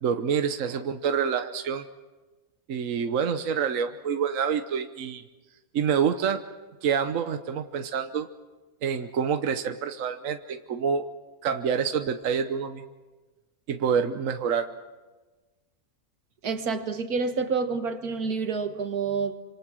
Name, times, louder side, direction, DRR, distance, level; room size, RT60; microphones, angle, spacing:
voice 1, 0.0-1.8 2.7-5.2 5.7-6.4 6.8-8.3 8.8-11.0 11.4-12.8 13.7-14.7, right 7 dB, 65° right, 8 dB, 1.3 m, -27 dB
voice 2, 16.4-19.3, right 5 dB, 80° right, 8 dB, 2.0 m, -28 dB
26.5 x 26.0 x 6.3 m, 1.2 s
omnidirectional pair, 1.6 m